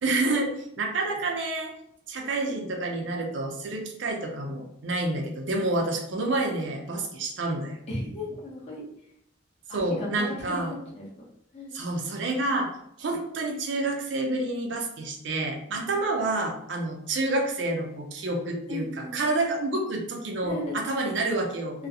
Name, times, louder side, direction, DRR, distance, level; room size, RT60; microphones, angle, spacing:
voice 1, 0.0-1.7 2.1-7.8 9.7-10.7 11.7-12.7 13.0-21.8, right 2 dB, 65° right, 1 dB, 0.5 m, -28 dB
voice 2, 7.9-8.8 9.7-10.7 10.9-11.1 11.5-11.9 15.7-16.2 18.7-19.2 20.4-21.1 21.8-21.9, left 1 dB, 35° left, -4 dB, 0.7 m, -36 dB
2.3 x 2.0 x 2.6 m, 0.74 s
head